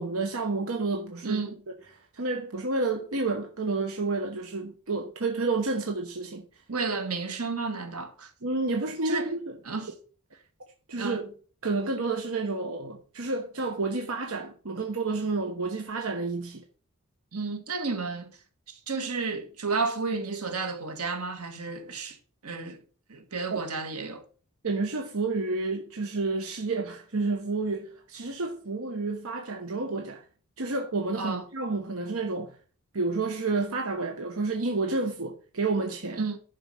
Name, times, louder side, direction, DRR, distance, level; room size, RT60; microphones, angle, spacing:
voice 1, 0.0-1.4 1.7-1.8 2.1-6.4 8.4-9.5 10.9-11.3 11.6-16.6 23.5-23.6 24.6-30.2 30.6-32.6 32.9-36.2, right 3 dB, 70° right, 1.1 m, -30 dB
voice 2, 1.2-1.5 6.7-8.3 9.1-9.3 9.7-9.9 11.0-11.3 17.3-18.4 18.7-22.2 22.4-22.8 23.1-24.2 31.2-31.4 36.2-36.4, right 4 dB, 90° right, 1.8 m, -32 dB
11.0 x 4.9 x 5.7 m
head